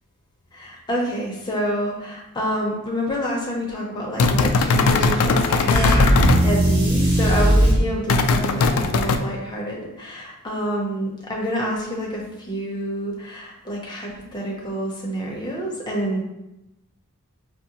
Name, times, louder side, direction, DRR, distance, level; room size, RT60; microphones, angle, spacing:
voice 1, 0.5-6.0 6.4-16.2, equal, 20° left, -3 dB, 0.7 m, -28 dB
sound 1, 4.2-6.4 8.1-9.2, left 3 dB, 85° left, 0.3 m, -19 dB
sound 2, 5.7-7.8, right 1 dB, 55° right, 1.5 m, -17 dB
4.8 x 2.1 x 2.8 m, 0.92 s
head